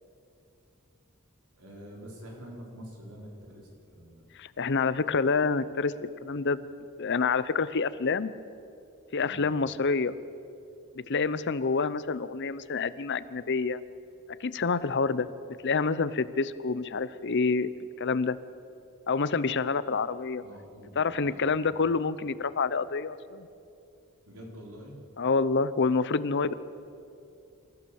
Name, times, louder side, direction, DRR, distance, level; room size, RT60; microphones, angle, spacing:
voice 1, 1.5-4.2 9.2-9.4 20.4-21.8 24.3-25.0, equal, 85° right, -1 dB, 4.8 m, -46 dB
voice 2, 4.3-5.9 6.2-6.7 7.0-8.3 9.1-10.1 10.9-13.8 14.4-15.3 15.6-17.7 18.0-18.4 19.1-20.4 21.0-23.5 25.2-26.5, left 4 dB, 55° left, 15 dB, 0.7 m, -27 dB
27.0 x 15.0 x 7.1 m, 2.6 s
head